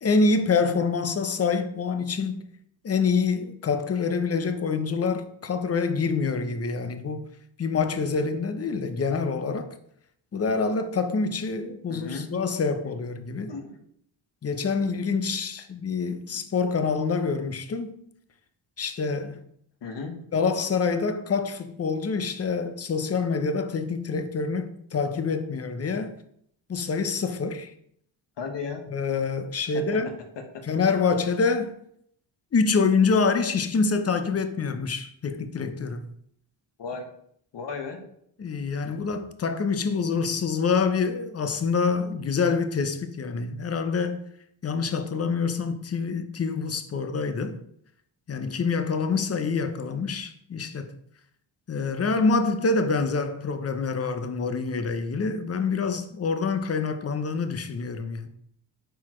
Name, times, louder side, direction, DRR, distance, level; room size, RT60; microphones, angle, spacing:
voice 1, 0.0-2.5 2.8-7.3 7.6-9.8 10.3-13.5 14.4-18.0 18.8-19.4 20.3-26.2 26.7-27.7 28.9-30.1 30.6-31.8 32.5-36.1 38.4-44.2 44.6-47.6 48.3-50.9 51.7-58.3, left 4 dB, 30° left, 0.7 m, -26 dB
voice 2, 11.9-12.3 12.7-12.8 13.5-13.8 19.8-20.2 28.4-28.9 29.7-29.8 36.8-37.1 37.5-38.0, left 4 dB, 60° left, 1.4 m, -35 dB
9.2 x 4.1 x 3.1 m
cardioid pair, 95°, 47 cm